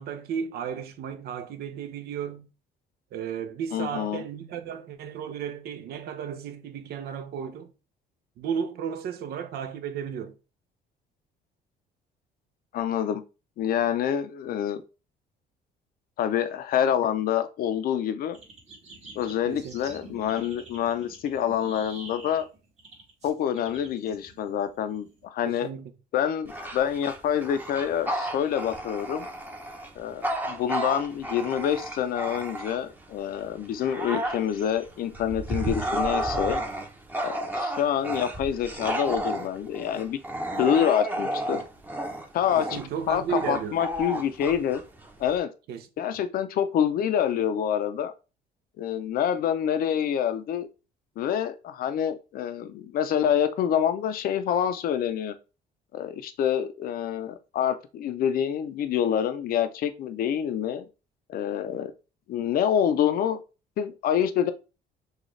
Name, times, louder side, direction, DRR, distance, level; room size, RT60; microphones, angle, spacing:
voice 1, 0.0-2.5 3.1-7.7 8.4-10.3 19.5-19.7 25.4-25.9 42.6-43.8 45.7-45.9, right 7 dB, 70° right, 0.8 m, -34 dB
voice 2, 3.7-4.2 12.7-13.2 13.6-14.8 16.2-18.4 19.2-22.5 23.2-25.7 26.1-29.3 30.0-36.6 37.2-40.2 40.6-41.6 42.3-42.8 43.1-44.8 45.2-45.5 46.0-48.1 48.8-50.7 51.2-55.3 55.9-60.9 61.3-61.9 62.3-63.4 63.8-64.5, left 9 dB, 60° left, 0.6 m, -27 dB
sound 1, 18.3-25.3, right 2 dB, 40° right, 1.8 m, -48 dB
Bark / Growling, 26.5-33.0 33.5-45.4, right 1 dB, 10° right, 0.9 m, -32 dB
6.3 x 2.4 x 3.2 m
cardioid pair, 110°, 17 cm